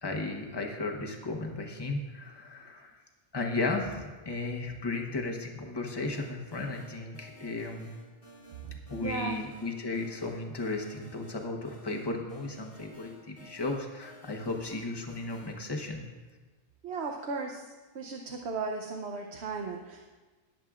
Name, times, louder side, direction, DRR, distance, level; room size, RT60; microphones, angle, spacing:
voice 1, 0.0-2.9 3.3-7.9 8.9-16.0, left 3 dB, 25° left, 2 dB, 1.0 m, -35 dB
sound 1, 6.0-15.6, right 1 dB, 80° left, 4.2 m, -53 dB
voice 2, 9.0-9.4 16.8-17.6 17.9-20.1, right 4 dB, 70° right, 2 dB, 1.0 m, -35 dB
20.5 x 7.5 x 2.4 m, 1.3 s
omnidirectional pair, 1.2 m